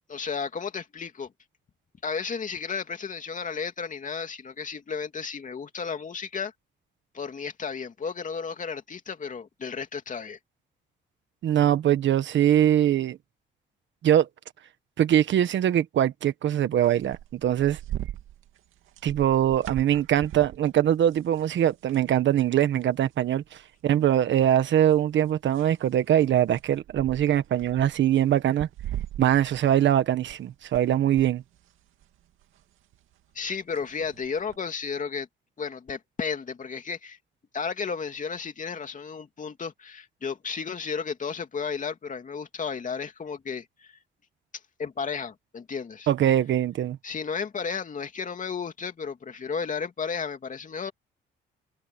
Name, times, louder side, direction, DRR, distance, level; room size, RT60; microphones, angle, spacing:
voice 1, 0.1-1.3 2.0-6.5 7.1-10.4 33.3-35.3 35.6-37.2 37.5-44.0 44.8-46.1 47.0-50.9, left 5 dB, 40° left, 2.7 m, -33 dB
voice 2, 11.4-13.2 14.0-14.3 15.0-17.8 19.0-28.7 29.2-31.4 46.1-47.0, right 11 dB, 70° right, 1.4 m, -22 dB
sound 1, 16.8-22.1 22.5-22.6 23.0-23.8 24.3-30.8 31.1-34.6, right 12 dB, 85° right, 2.4 m, -41 dB
cardioid pair, 90°, 20 cm